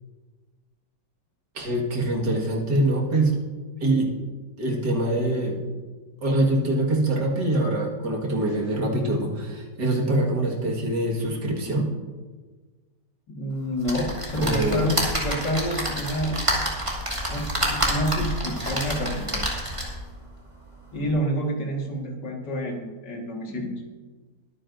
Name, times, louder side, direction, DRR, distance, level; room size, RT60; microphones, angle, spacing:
voice 1, 1.5-3.4 3.8-4.1 4.6-5.6 6.2-11.9 14.3-14.9, right 1 dB, 75° right, 0 dB, 2.4 m, -24 dB
voice 2, 13.3-16.4 17.3-19.4 20.9-23.7, equal, 85° left, 0 dB, 2.4 m, -28 dB
sound 1, 13.8-20.1 20.6-20.7 21.0-21.1, equal, 15° right, 2.4 m, -28 dB
22.0 x 9.3 x 2.6 m, 1.4 s
omnidirectional pair, 1.8 m